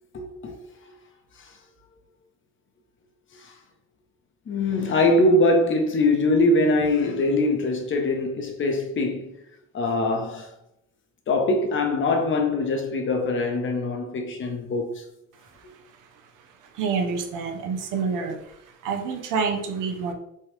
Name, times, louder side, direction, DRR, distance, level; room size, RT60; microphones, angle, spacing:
voice 1, 0.1-0.6 1.4-1.5 3.4-3.5 4.5-9.3 9.7-10.5 11.3-15.0, left 2 dB, 40° left, 0.7 m, -23 dB
voice 2, 16.7-18.6 18.8-20.1, right 5 dB, 90° right, 0.6 m, -27 dB
3.2 x 2.3 x 3.0 m
cardioid pair, 90°, 30 cm